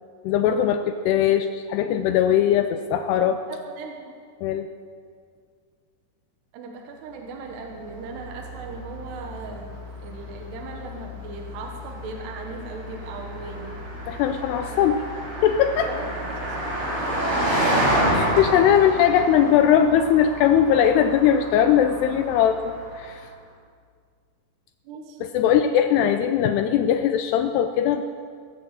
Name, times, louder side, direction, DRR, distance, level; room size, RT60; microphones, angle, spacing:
voice 1, 0.2-3.4 4.4-4.7 14.1-15.0 15.4-15.9 18.1-23.2 25.2-28.0, left 9 dB, 80° left, 7 dB, 2.5 m, -20 dB
voice 2, 3.2-4.2 6.5-13.7 14.7-14.8 15.9-16.4 24.8-25.3, right 3 dB, 75° right, 1 dB, 3.2 m, -38 dB
Car passing by, 7.5-23.2, right 1 dB, 30° right, 4.1 m, -30 dB
18.5 x 8.3 x 7.5 m, 2.1 s
omnidirectional pair, 5.1 m